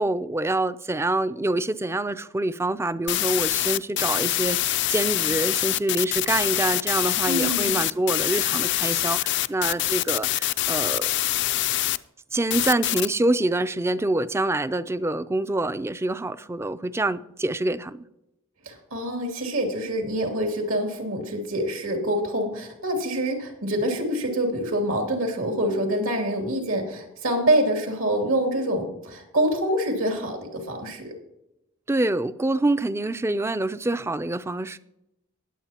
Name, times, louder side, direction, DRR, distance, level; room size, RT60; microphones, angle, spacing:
voice 1, 0.0-11.1 12.3-18.0 31.9-34.8, right 2 dB, 10° right, 0.4 m, -26 dB
sound 1, 3.1-12.0 12.5-13.1, left 15 dB, 60° left, 0.4 m, -25 dB
voice 2, 7.3-7.8 18.6-31.1, right 1 dB, 80° right, 2.8 m, -26 dB
19.5 x 8.1 x 2.9 m
head